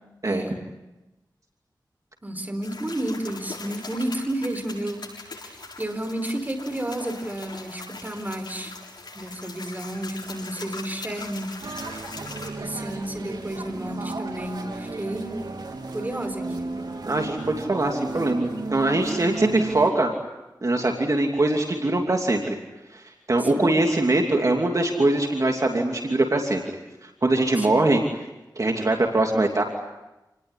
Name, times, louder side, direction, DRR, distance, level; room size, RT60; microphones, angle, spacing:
voice 1, 0.2-0.6 2.2-8.8 9.1-11.6 12.6-15.4 15.9-16.7 23.4-23.8 27.6-27.9, right 1 dB, 25° right, 6 dB, 4.4 m, -32 dB
sound 1, 2.6-12.5, left 3 dB, 80° left, 7.4 m, -41 dB
sound 2, 11.6-19.9, right 3 dB, 75° right, 3.8 m, -34 dB
voice 2, 17.1-20.1 20.6-22.6 22.9-28.0 28.6-29.6, right 2 dB, 50° right, 2 dB, 2.8 m, -22 dB
28.5 x 20.0 x 9.9 m, 1.0 s
wide cardioid pair, 75°, 7 cm